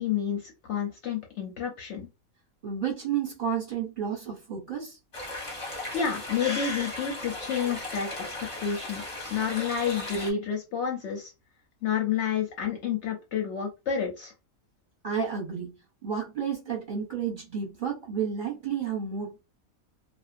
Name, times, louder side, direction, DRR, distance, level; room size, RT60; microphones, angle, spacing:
voice 1, 0.0-2.1 5.9-8.1 8.6-9.0 9.3-11.3 11.8-14.3, left 7 dB, 65° left, 0.8 m, -29 dB
voice 2, 2.6-5.0 15.0-15.7 16.0-19.4, right 7 dB, 40° right, 0.9 m, -31 dB
sound 1, 5.1-10.3, left 2 dB, 30° left, 0.6 m, -36 dB
2.4 x 2.1 x 2.4 m
omnidirectional pair, 1.5 m